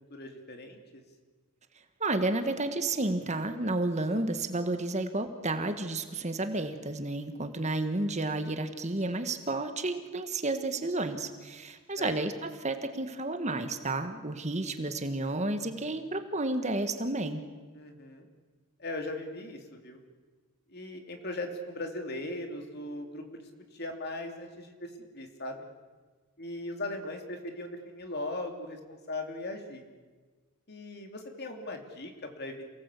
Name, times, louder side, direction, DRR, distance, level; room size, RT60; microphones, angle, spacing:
voice 1, 0.1-1.0 12.0-12.2 17.7-18.3 18.8-20.0 20.7-25.7 26.4-29.8 30.7-32.7, left 2 dB, 45° left, 4 dB, 3.0 m, -39 dB
voice 2, 2.0-17.4, right 2 dB, 30° right, 8 dB, 1.6 m, -31 dB
28.0 x 19.0 x 8.4 m, 1.4 s
head